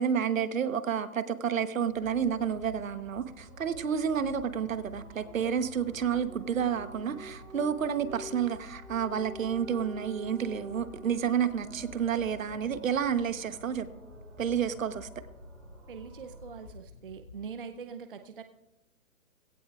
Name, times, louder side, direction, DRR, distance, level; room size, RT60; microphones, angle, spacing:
voice 1, 0.0-13.9 14.4-15.1, right 8 dB, 70° right, 11 dB, 1.1 m, -30 dB
sound 1, 1.9-17.5, left 2 dB, 50° left, 2.8 m, -50 dB
sound 2, 2.0-16.7, equal, 15° right, 2.4 m, -50 dB
voice 2, 15.9-18.4, right 6 dB, 40° right, 7 dB, 0.7 m, -43 dB
17.0 x 16.0 x 2.4 m, 0.94 s
hypercardioid pair, 180°, 42 cm